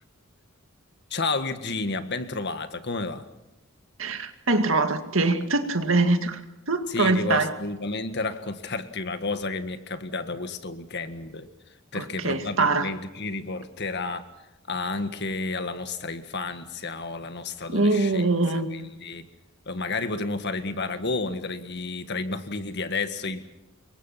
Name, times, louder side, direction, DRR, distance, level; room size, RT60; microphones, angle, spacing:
voice 1, 1.1-3.2 6.9-11.5 11.9-14.3 14.7-18.3 18.7-19.3 19.7-23.4, left 3 dB, 55° left, 1.7 m, -31 dB
voice 2, 4.0-6.4 6.7-7.5 11.9-12.9 17.7-18.8, right 3 dB, 70° right, 2.2 m, -23 dB
28.0 x 23.5 x 5.9 m
head